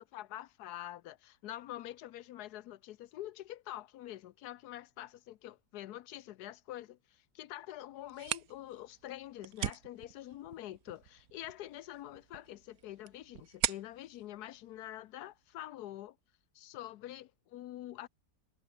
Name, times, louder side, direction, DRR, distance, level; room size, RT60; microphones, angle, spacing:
voice 1, 0.0-16.1 16.5-18.1, left 13 dB, 85° left, 1.2 m, -46 dB
sound 1, 8.0-15.5, right 12 dB, 70° right, 1.2 m, -42 dB
omnidirectional pair, 1.6 m